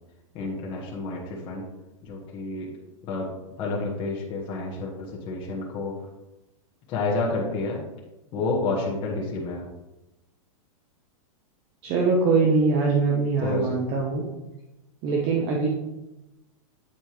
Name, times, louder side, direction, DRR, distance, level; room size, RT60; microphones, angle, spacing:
voice 1, 0.3-1.6 2.0-2.7 3.0-3.3 3.6-6.1 6.9-7.8 8.3-9.7 13.4-13.8, left 3 dB, 30° left, -4 dB, 1.4 m, -29 dB
voice 2, 11.8-14.2 15.0-15.7, right 4 dB, 35° right, -1 dB, 0.9 m, -22 dB
8.7 x 4.4 x 3.1 m, 0.99 s
supercardioid pair, 155°, 18 cm